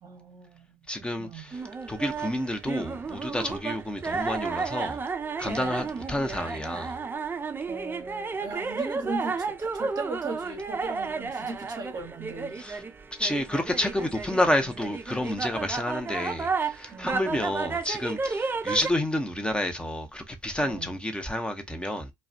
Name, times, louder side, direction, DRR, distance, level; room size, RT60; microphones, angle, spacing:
voice 1, 0.0-0.8 1.2-1.4 5.5-5.9 7.7-12.6 16.9-17.3 20.6-20.9, right 3 dB, 45° right, 0.8 m, -38 dB
voice 2, 0.9-1.6 1.9-5.0 5.4-7.0 12.5-12.8 13.1-22.1, left 1 dB, 10° left, 0.7 m, -29 dB
sound 1, 1.5-18.9, right 4 dB, 20° right, 0.4 m, -32 dB
2.3 x 2.2 x 2.5 m
hypercardioid pair, 60°, 10 cm